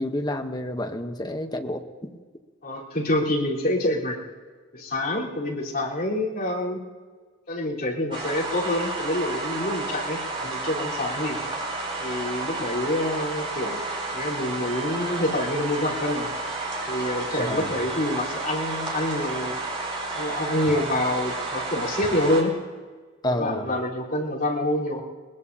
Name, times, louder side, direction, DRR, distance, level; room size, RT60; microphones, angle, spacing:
voice 1, 0.0-2.1 17.4-17.8 23.2-23.7, left 1 dB, 20° left, 5 dB, 1.0 m, -29 dB
voice 2, 2.6-4.2 4.7-6.8 7.5-11.4 12.0-13.8 14.1-16.3 16.9-19.6 20.1-22.5 23.3-25.0, left 1 dB, 50° left, -6 dB, 4.1 m, -27 dB
sound 1, 8.1-22.4, right 2 dB, 30° right, 3.7 m, -31 dB
21.5 x 20.0 x 2.8 m, 1.5 s
head